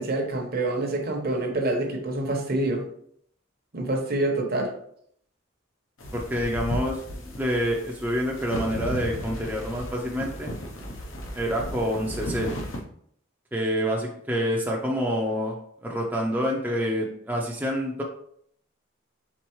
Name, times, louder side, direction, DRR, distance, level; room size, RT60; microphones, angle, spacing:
voice 1, 0.0-2.8 3.7-4.7, right 2 dB, 50° right, 2 dB, 0.9 m, -26 dB
sound 1, 6.0-12.8, equal, 85° left, 0.9 m, -35 dB
voice 2, 6.1-10.5 11.3-12.5 13.5-15.6 15.8-18.0, equal, 10° right, -2 dB, 0.5 m, -27 dB
4.4 x 3.8 x 3.1 m, 0.67 s
head